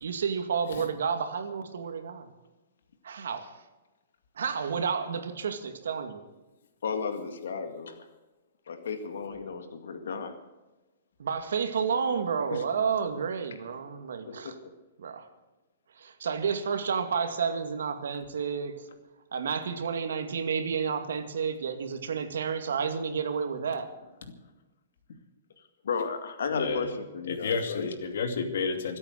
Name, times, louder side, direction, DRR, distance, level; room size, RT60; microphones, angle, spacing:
voice 1, 0.0-2.3 3.0-3.5 4.4-6.2 11.2-14.5 15.0-15.2 16.0-18.9 19.3-23.9, right 6 dB, 85° right, 7 dB, 2.2 m, -30 dB
voice 2, 6.8-8.0 8.7-10.3 12.5-12.6 14.3-14.7 25.8-27.9, left 5 dB, 80° left, 7 dB, 1.9 m, -33 dB
voice 3, 26.5-26.9 27.3-29.0, left 5 dB, 60° left, 7 dB, 2.5 m, -31 dB
24.5 x 8.8 x 6.5 m, 1.1 s
hypercardioid pair, 180°, 0 cm